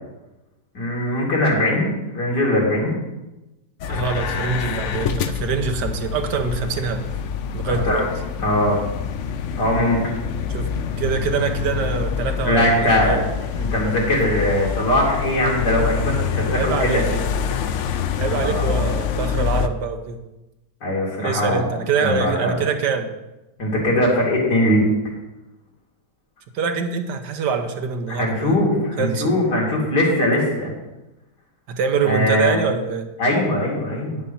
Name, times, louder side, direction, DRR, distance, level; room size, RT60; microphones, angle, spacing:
voice 1, 0.8-3.0 7.8-8.0 8.4-8.8 9.6-10.0 12.5-13.2 13.5-17.1 18.4-18.7 20.8-21.7 22.0-22.6 23.6-24.9 28.2-30.7 32.1-32.6 33.2-34.2, left 1 dB, 85° left, -3 dB, 3.4 m, -20 dB
sound 1, 3.8-19.7, left 7 dB, 65° left, 0.7 m, -26 dB
voice 2, 3.9-7.1 7.5-8.1 10.5-10.7 11.0-13.3 16.5-17.4 18.2-20.2 21.2-23.1 26.5-28.6 29.0-29.3 31.7-33.1, right 5 dB, 85° right, 7 dB, 1.6 m, -24 dB
10.0 x 7.4 x 5.5 m, 1.0 s
omnidirectional pair, 1.8 m